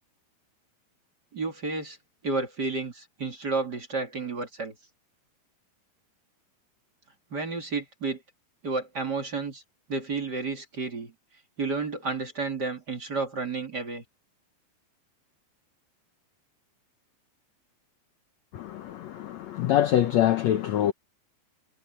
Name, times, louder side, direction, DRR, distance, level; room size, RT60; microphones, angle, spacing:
voice 1, 1.3-2.0 2.2-4.7 7.3-8.2 8.6-9.6 9.9-11.1 11.6-14.0, right 3 dB, 30° right, 2.6 m, -31 dB
voice 2, 18.5-20.9, left 12 dB, 80° left, 1.5 m, -24 dB
omnidirectional pair, 4.4 m